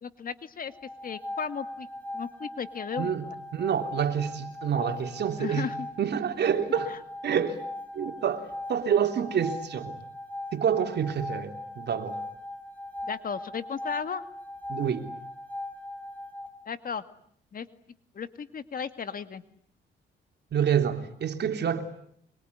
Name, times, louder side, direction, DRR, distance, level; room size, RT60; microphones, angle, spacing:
voice 1, 0.0-0.7 1.0-1.9 2.1-3.4 5.4-5.9 13.1-14.3 16.7-17.0 17.5-17.7 18.1-19.4, left 6 dB, 45° left, 2.2 m, -35 dB
sound 1, 0.7-16.5, left 1 dB, 5° left, 6.2 m, -39 dB
voice 2, 3.0-5.7 6.0-6.9 7.2-7.6 7.9-8.4 8.7-9.9 10.5-12.2 14.7-15.1 20.5-21.8, right 8 dB, 60° right, 3.5 m, -27 dB
25.5 x 23.5 x 9.8 m
cardioid pair, 90°, 20 cm